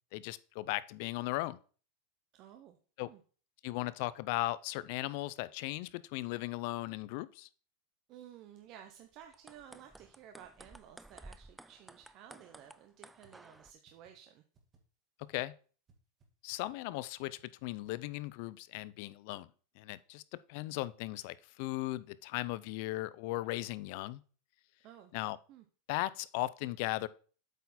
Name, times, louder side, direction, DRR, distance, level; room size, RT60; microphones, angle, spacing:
voice 1, 0.1-1.6 3.0-3.1 3.6-7.5 15.3-15.5 16.4-19.5 19.8-20.2 20.5-24.2 25.1-25.4 25.9-27.1, left 18 dB, 55° left, 18 dB, 0.4 m, -37 dB
voice 2, 2.3-2.8 3.0-3.2 8.1-14.4 24.8-25.1 25.5-25.6, right 10 dB, 45° right, 6 dB, 0.7 m, -54 dB
sound 1, 9.2-13.7, right 2 dB, 5° right, 0.3 m, -55 dB
sound 2, 13.2-13.3 13.6-13.7 13.9-14.1 14.5-14.8 15.2-15.4 15.9-16.0 16.2-16.3 16.5-16.8 17.2-17.4 17.8-18.1, right 5 dB, 25° right, 1.7 m, -65 dB
8.1 x 4.2 x 4.2 m, 0.40 s
supercardioid pair, 140°, 0 cm